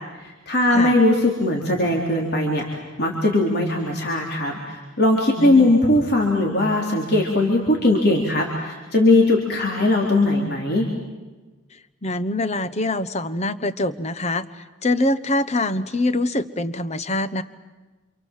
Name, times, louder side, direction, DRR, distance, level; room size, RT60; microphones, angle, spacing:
voice 1, 0.5-10.9, left 2 dB, 50° left, -1 dB, 3.7 m, -19 dB
voice 2, 5.4-5.7 12.0-14.5 14.8-17.4, left 2 dB, 30° left, 12 dB, 1.0 m, -24 dB
28.5 x 27.5 x 7.5 m, 1.2 s
head